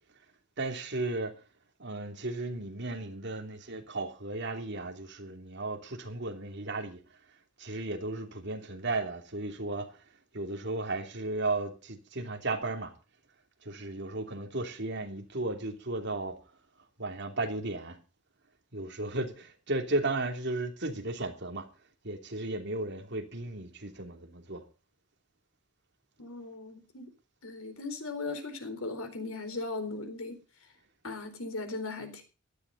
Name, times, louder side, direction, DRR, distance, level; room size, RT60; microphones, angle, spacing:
voice 1, 0.6-1.4 1.8-7.0 7.6-10.1 10.3-12.9 13.6-16.4 17.0-18.0 18.7-21.7 22.0-24.6, right 2 dB, 55° right, 3.0 m, -35 dB
voice 2, 26.2-27.1 27.4-30.4 31.0-32.2, left 3 dB, 90° left, 4.3 m, -38 dB
16.5 x 13.0 x 4.1 m
head